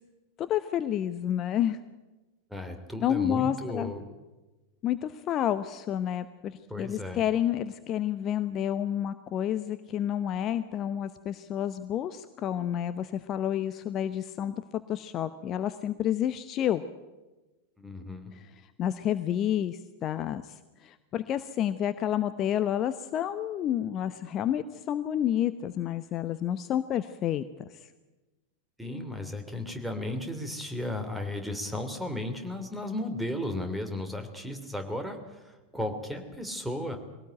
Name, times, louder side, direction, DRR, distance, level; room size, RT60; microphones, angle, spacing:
voice 1, 0.4-1.8 3.0-3.9 4.8-16.8 18.8-27.4, left 10 dB, 30° left, 12 dB, 0.8 m, -30 dB
voice 2, 2.5-4.1 6.7-7.2 17.8-18.3 28.8-37.0, left 1 dB, 5° right, 6 dB, 3.2 m, -35 dB
22.5 x 17.5 x 9.2 m, 1.1 s
figure-of-eight pair, 90°, 0 cm